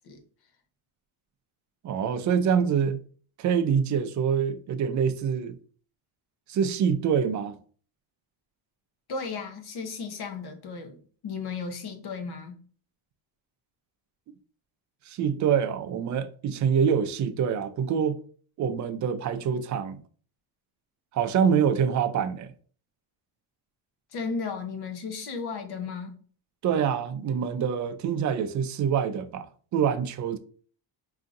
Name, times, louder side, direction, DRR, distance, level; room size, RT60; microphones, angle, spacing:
voice 1, 1.8-3.0 3.4-5.6 6.5-7.6 15.1-18.2 18.6-20.0 21.1-22.5 26.6-29.5 29.7-30.4, right 7 dB, 40° right, 0.4 m, -25 dB
voice 2, 9.1-12.6 24.1-26.2, left 5 dB, 50° left, 0.9 m, -35 dB
4.9 x 2.7 x 2.5 m
cardioid pair, 130°, 48 cm